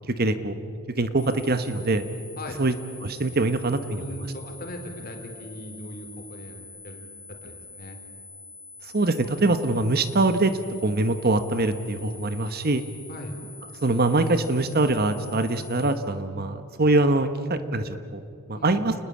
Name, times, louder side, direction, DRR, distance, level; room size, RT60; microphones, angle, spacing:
voice 1, 0.1-0.6 1.0-2.0 2.6-2.7 3.0-4.0 8.9-12.8 13.8-18.2 18.5-18.9, right 2 dB, 45° right, 10 dB, 1.2 m, -23 dB
sound 1, 1.2-15.9, left 3 dB, 5° left, 2.5 m, -45 dB
voice 2, 2.4-2.7 3.9-7.0 7.3-8.0 13.1-13.4 18.6-18.8, left 1 dB, 40° left, 4 dB, 3.9 m, -39 dB
29.0 x 20.0 x 8.6 m, 2.4 s
head